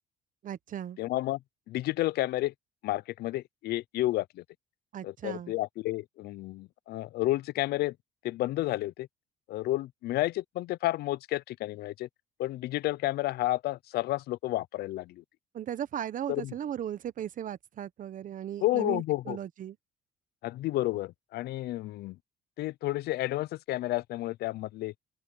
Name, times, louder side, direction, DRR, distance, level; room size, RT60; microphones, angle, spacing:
voice 1, 0.4-1.0 4.9-5.5 15.5-19.8, right 10 dB, 50° right, 1.1 m, -37 dB
voice 2, 1.0-1.4 1.7-2.5 2.8-4.4 5.0-8.0 8.2-9.1 9.5-12.1 12.4-15.2 16.3-16.5 18.6-19.4 20.4-22.2 22.6-24.9, left 16 dB, 70° left, 0.5 m, -31 dB
open air
cardioid pair, 110°, 17 cm